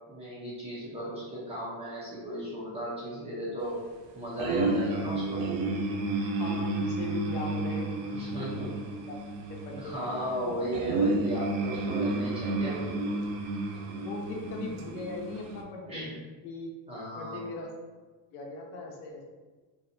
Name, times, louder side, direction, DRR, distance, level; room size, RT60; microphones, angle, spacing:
voice 1, 0.1-3.8 4.1-5.5 8.1-8.7 9.8-12.8 15.8-16.2 16.9-17.5, equal, 15° right, -8 dB, 0.4 m, -35 dB
sound 1, 4.4-15.6, right 2 dB, 90° right, 0.5 m, -31 dB
voice 2, 6.4-7.9 8.1-8.7 9.1-9.2 9.6-9.9 10.4-10.5 13.9-16.1 16.4-16.7 17.2-17.7 18.3-19.3, left 3 dB, 80° left, 0 dB, 0.7 m, -39 dB
2.6 x 2.1 x 2.4 m, 1.3 s
cardioid pair, 165°, 41 cm